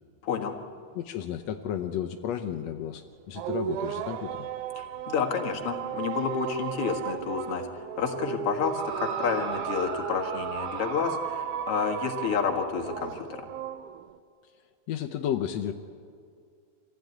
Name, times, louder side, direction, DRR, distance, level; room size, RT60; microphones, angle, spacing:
voice 1, 0.2-0.6 4.8-7.6 8.0-13.5, left 6 dB, 50° left, 2 dB, 2.1 m, -30 dB
voice 2, 0.9-4.5 14.9-15.7, left 10 dB, 80° left, 5 dB, 1.5 m, -32 dB
sound 1, 3.4-14.2, right 10 dB, 75° right, 1.9 m, -35 dB
sound 2, 8.6-12.3 13.1-13.2, right 6 dB, 55° right, 5.1 m, -37 dB
25.5 x 15.5 x 9.4 m, 2.2 s
omnidirectional pair, 4.1 m